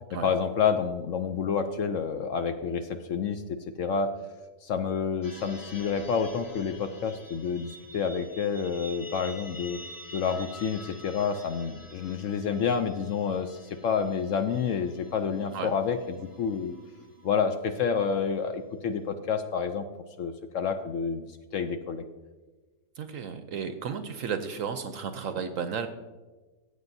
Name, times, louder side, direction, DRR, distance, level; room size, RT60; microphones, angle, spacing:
voice 1, 0.2-4.1 4.6-9.8 10.1-16.8 17.2-19.8 20.2-22.0, left 6 dB, 65° left, 8 dB, 0.8 m, -29 dB
sound 1, 5.2-17.8, left 1 dB, 15° left, 0.8 m, -48 dB
voice 2, 23.0-25.9, right 6 dB, 65° right, 9 dB, 0.9 m, -33 dB
14.5 x 8.0 x 2.7 m, 1.3 s
omnidirectional pair, 1.7 m